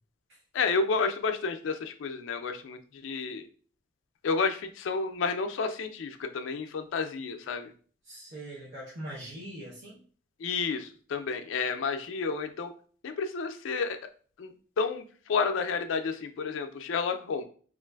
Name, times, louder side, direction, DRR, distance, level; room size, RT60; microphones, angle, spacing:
voice 1, 0.5-3.4 4.2-7.7 10.4-12.7 13.0-14.0 14.4-17.4, left 4 dB, 80° left, 7 dB, 0.4 m, -31 dB
voice 2, 8.0-10.0, right 1 dB, 60° right, -8 dB, 0.8 m, -42 dB
3.1 x 2.4 x 2.3 m, 0.43 s
head